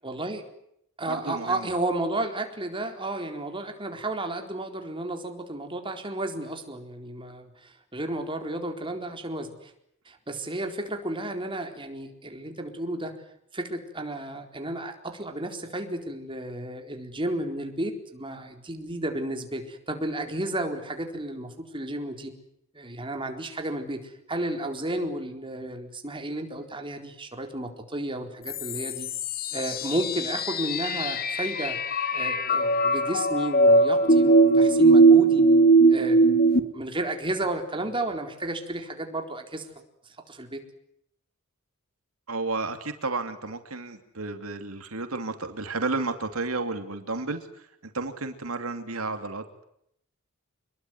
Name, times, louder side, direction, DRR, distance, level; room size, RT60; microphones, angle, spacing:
voice 1, 0.0-0.4 1.0-9.7 10.1-13.1 13.5-22.3 22.7-29.1 29.5-31.8 32.1-35.4 35.9-39.7 40.1-40.6, right 1 dB, 25° right, 5 dB, 4.2 m, -32 dB
voice 2, 1.1-1.7 42.3-49.4, right 3 dB, 90° right, 8 dB, 2.8 m, -32 dB
sound 1, 28.5-36.6, right 2 dB, 45° left, 2.6 m, -20 dB
27.0 x 22.0 x 9.6 m, 0.75 s
head